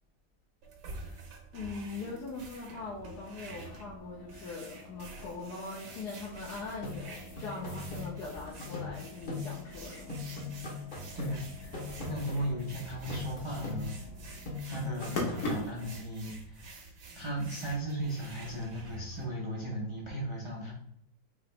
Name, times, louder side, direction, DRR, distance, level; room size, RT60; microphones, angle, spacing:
sound 1, 0.6-19.2, right 3 dB, 75° right, 1.5 m, -49 dB
voice 1, 0.9-1.2 1.5-10.2, left 3 dB, 75° left, -4 dB, 1.3 m, -41 dB
sound 2, 3.2-16.0, left 1 dB, 55° left, 1.3 m, -44 dB
sound 3, 6.8-9.8 10.1-12.8 13.1-14.2 14.5-15.5, left 4 dB, 40° left, 0.9 m, -40 dB
voice 2, 11.1-11.8 12.1-14.0 14.6-16.8 17.1-20.7, right 1 dB, 50° right, -3 dB, 0.3 m, -36 dB
4.9 x 2.9 x 3.2 m, 0.72 s
omnidirectional pair, 1.8 m